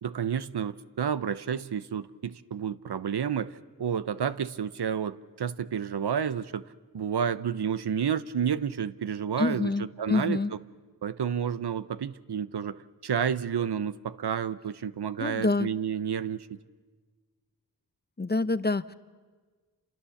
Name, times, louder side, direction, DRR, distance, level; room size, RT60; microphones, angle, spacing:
voice 1, 0.0-6.6 6.9-10.4 11.0-16.6, right 7 dB, 70° right, 15 dB, 0.8 m, -30 dB
voice 2, 9.4-10.5 15.2-15.7 18.2-18.9, left 3 dB, 25° left, 14 dB, 0.8 m, -27 dB
29.0 x 27.0 x 7.1 m, 1.4 s
cardioid pair, 55°, 41 cm